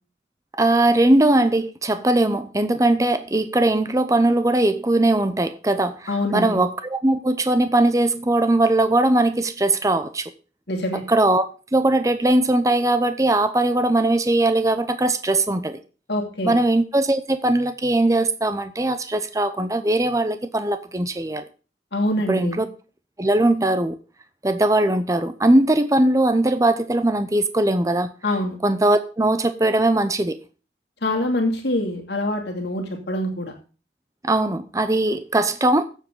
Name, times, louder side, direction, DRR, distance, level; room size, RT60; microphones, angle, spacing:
voice 1, 0.5-10.3 10.9-11.4 11.7-15.8 16.4-21.4 22.3-22.7 23.2-24.0 24.4-28.1 28.6-30.4 34.2-35.8, right 2 dB, 20° right, 0.7 m, -20 dB
voice 2, 6.1-6.6 10.7-11.0 16.1-16.6 21.9-22.6 28.2-28.6 31.0-33.5, left 1 dB, 70° left, 2.6 m, -25 dB
16.0 x 7.5 x 3.8 m
head